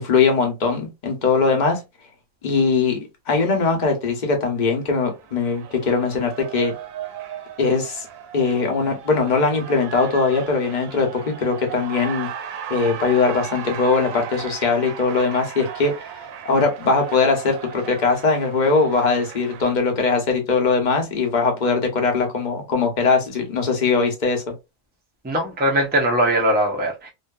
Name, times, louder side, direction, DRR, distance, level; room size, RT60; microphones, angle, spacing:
voice 1, 0.0-1.8 2.4-3.0 3.3-6.7 7.6-8.1 8.3-12.3 12.7-15.9 16.5-24.4, left 4 dB, 40° left, 0.8 m, -20 dB
Cheering, 4.6-19.8, right 9 dB, 90° right, 1.0 m, -36 dB
voice 2, 25.2-27.1, right 1 dB, 15° right, 0.3 m, -20 dB
2.7 x 2.4 x 2.3 m
omnidirectional pair, 1.4 m